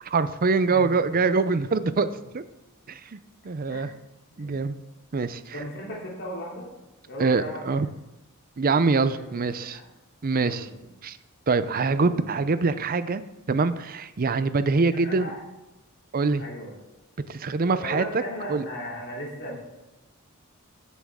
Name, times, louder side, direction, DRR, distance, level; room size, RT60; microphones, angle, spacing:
voice 1, 0.1-2.1 2.3-2.4 2.9-3.2 3.4-3.9 4.4-4.8 5.1-5.5 7.2-7.9 8.6-9.8 10.2-10.7 11.0-11.2 11.5-13.2 13.5-15.3 16.1-16.4 17.3-18.0 18.5-18.6, right 4 dB, 40° right, 13 dB, 0.5 m, -24 dB
voice 2, 0.7-1.0 3.7-3.9 4.3-4.6 5.5-6.7 7.1-7.7 9.1-9.8 10.4-10.9 12.0-12.3 14.9-15.4 16.4-16.7 17.8-19.6, left 1 dB, 55° left, -4 dB, 3.2 m, -37 dB
14.5 x 7.3 x 3.6 m, 0.99 s
head